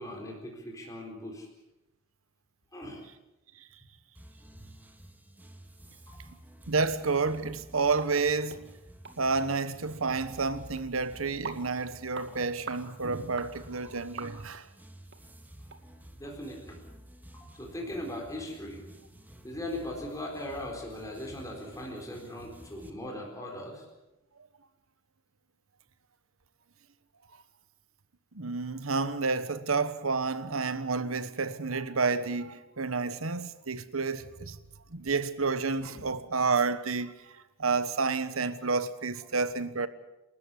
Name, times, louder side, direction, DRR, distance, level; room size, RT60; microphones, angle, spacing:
voice 1, 0.0-1.5 2.7-3.0 6.1-6.2 16.1-16.8 17.3-18.8 19.4-23.9 36.0-36.1, left 1 dB, 15° left, 4.2 m, -39 dB
sound 1, 4.1-22.9, right 1 dB, 10° right, 2.0 m, -52 dB
voice 2, 6.7-8.7 9.2-14.7 28.3-34.6 34.9-39.9, right 4 dB, 85° right, 1.3 m, -30 dB
sound 2, 8.0-8.1 8.5-8.6 9.0-9.2 9.4-9.5 10.1-10.2 10.8-10.9 11.4-11.6 12.1-12.3 12.7-12.8 13.4-13.5 14.2-14.6 15.1-15.2 15.7-15.8 16.2-16.3, right 4 dB, 60° right, 2.3 m, -41 dB
29.5 x 13.5 x 8.4 m
head